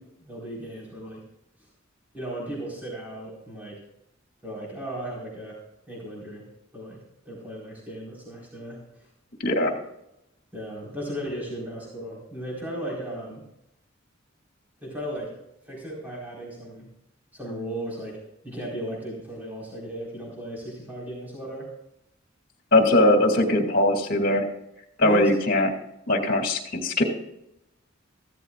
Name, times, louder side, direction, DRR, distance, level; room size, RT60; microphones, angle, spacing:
voice 1, 0.2-1.3 2.1-3.8 4.4-5.6 5.9-9.1 10.5-13.4 14.8-15.3 15.6-16.9 17.3-18.2 18.4-21.7 25.0-25.4, right 1 dB, 10° right, -5 dB, 4.4 m, -36 dB
voice 2, 22.7-24.5 25.0-25.7 26.1-27.0, left 1 dB, 50° left, 3 dB, 2.4 m, -20 dB
15.0 x 14.0 x 2.4 m, 0.83 s
head